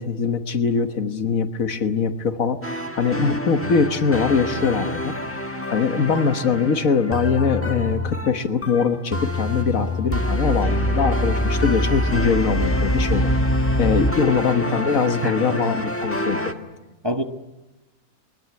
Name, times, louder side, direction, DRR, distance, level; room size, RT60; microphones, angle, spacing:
voice 1, 0.0-2.6 3.0-5.1 5.7-13.3 13.8-16.4, left 5 dB, 75° left, 9 dB, 1.7 m, -22 dB
sound 1, 2.6-16.5, left 1 dB, 10° left, 1.5 m, -25 dB
voice 2, 15.2-15.8 17.0-17.2, equal, 20° right, 6 dB, 1.0 m, -27 dB
21.5 x 20.0 x 9.5 m, 1.1 s
omnidirectional pair, 1.4 m